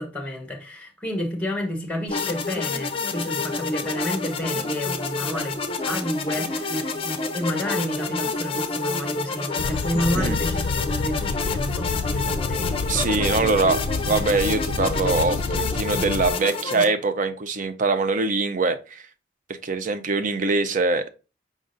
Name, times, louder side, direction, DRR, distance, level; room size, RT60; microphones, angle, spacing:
voice 1, 0.0-6.9 7.3-13.7, equal, 5° left, 1.1 m, -30 dB
sound 1, 2.1-16.8, left 4 dB, 30° left, 0.5 m, -28 dB
sound 2, 9.6-16.3, left 4 dB, 85° left, 0.4 m, -29 dB
voice 2, 12.9-19.1 19.5-21.1, right 3 dB, 45° right, 0.5 m, -23 dB
5.1 x 3.8 x 2.6 m
head